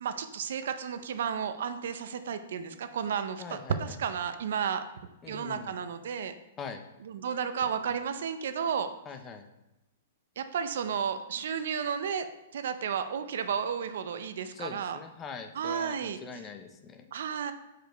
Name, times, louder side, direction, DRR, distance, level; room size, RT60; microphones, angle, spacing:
voice 1, 0.0-4.9 5.3-6.3 7.1-8.9 10.4-12.3 12.5-15.0 15.5-16.2 17.1-17.5, right 7 dB, 60° right, 10 dB, 0.5 m, -32 dB
voice 2, 3.4-3.8 5.2-5.8 6.6-6.8 9.1-9.5 14.5-17.1, left 5 dB, 15° left, 6 dB, 0.4 m, -42 dB
5.0 x 4.8 x 4.5 m, 0.96 s
hypercardioid pair, 175°, 0 cm